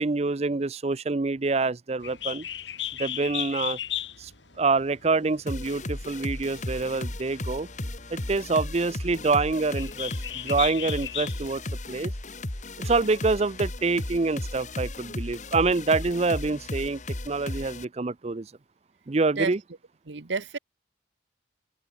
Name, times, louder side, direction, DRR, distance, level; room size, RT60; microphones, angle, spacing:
voice 1, 0.0-2.4 3.0-3.8 4.2-4.3 4.6-7.7 8.1-11.6 11.9-12.1 12.8-18.5 19.1-19.6, right 3 dB, 35° right, 0.5 m, -26 dB
Bird, 2.0-11.6, left 12 dB, 75° left, 3.2 m, -37 dB
sound 1, 5.5-17.8, left 1 dB, 40° left, 2.2 m, -35 dB
voice 2, 20.1-20.6, right 4 dB, 75° right, 1.0 m, -29 dB
open air
head